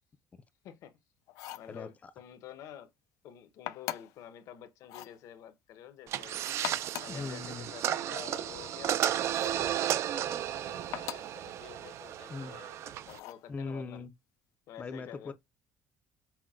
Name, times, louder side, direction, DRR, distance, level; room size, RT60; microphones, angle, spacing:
voice 1, 0.6-1.0 1.5-2.9 3.2-9.0 9.5-14.1 14.7-15.3, left 9 dB, 70° left, 0.8 m, -50 dB
sound 1, 1.3-1.7 3.7-4.2 4.8-5.2 6.5-7.2 9.3-9.7 10.9-11.4 13.1-13.5, left 15 dB, 85° left, 0.4 m, -40 dB
voice 2, 1.7-2.1 7.1-7.7 12.3-12.6 13.5-14.1 14.8-15.3, left 4 dB, 25° left, 0.4 m, -40 dB
sound 2, 6.1-13.2, right 11 dB, 55° right, 0.4 m, -33 dB
5.7 x 2.2 x 2.4 m
cardioid pair, 140°, 6 cm